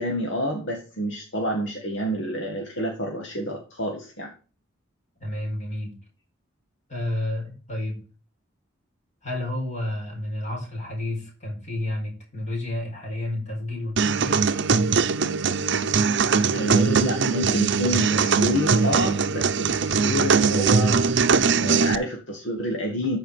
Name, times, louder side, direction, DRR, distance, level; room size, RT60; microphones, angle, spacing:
voice 1, 0.0-4.3 16.5-21.1 21.6-23.2, equal, 65° left, 1 dB, 2.0 m, -28 dB
voice 2, 5.2-5.9 6.9-8.0 9.2-14.4, left 1 dB, 40° left, 0 dB, 4.8 m, -30 dB
sound 1, 14.0-22.0, right 5 dB, 65° right, 0.7 m, -21 dB
13.0 x 5.0 x 5.0 m, 0.36 s
head